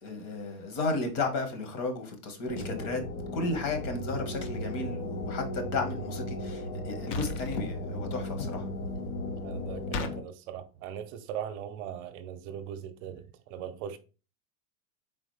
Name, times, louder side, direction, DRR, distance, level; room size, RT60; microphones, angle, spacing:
voice 1, 0.0-3.0 3.3-8.7, left 3 dB, 55° left, 1.5 m, -33 dB
sound 1, 2.5-10.2, left 1 dB, 80° left, 1.1 m, -36 dB
sound 2, 7.1-7.6 9.9-10.2, left 4 dB, 35° left, 0.6 m, -34 dB
voice 2, 9.4-14.0, right 9 dB, 50° right, 0.7 m, -40 dB
4.1 x 3.6 x 3.2 m
supercardioid pair, 120°, 47 cm